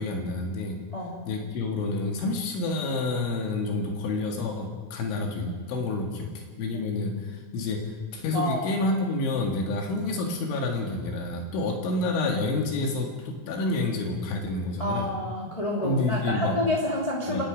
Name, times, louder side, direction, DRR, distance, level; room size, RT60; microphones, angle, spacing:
voice 1, 0.0-0.8 1.3-7.8 8.1-15.1 15.8-16.6 17.3-17.4, left 2 dB, 80° left, 1 dB, 4.4 m, -29 dB
voice 2, 14.8-17.4, left 1 dB, 10° left, -4 dB, 2.0 m, -29 dB
26.5 x 18.5 x 5.2 m, 1.4 s
omnidirectional pair, 5.4 m